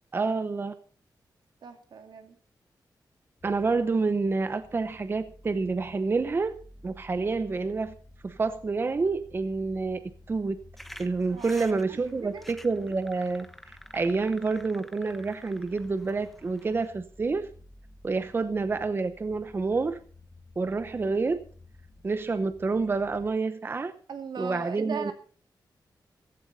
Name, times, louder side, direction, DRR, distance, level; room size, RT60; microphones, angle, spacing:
voice 1, 0.1-0.7 3.4-6.6 6.8-7.9 8.2-10.0 10.3-10.6 11.0-17.5 18.0-20.0 20.6-21.4 22.0-23.9 24.4-25.1, right 4 dB, 30° right, 11 dB, 0.8 m, -28 dB
voice 2, 1.6-2.4 11.3-11.6 11.9-12.4 24.1-25.1, right 6 dB, 75° right, 6 dB, 2.4 m, -38 dB
sound 1, 3.4-23.3, left 2 dB, 25° left, 2.2 m, -53 dB
sound 2, 10.8-16.9, equal, ahead, 1.1 m, -50 dB
15.5 x 15.0 x 4.1 m, 0.41 s
wide cardioid pair, 165°, 8 cm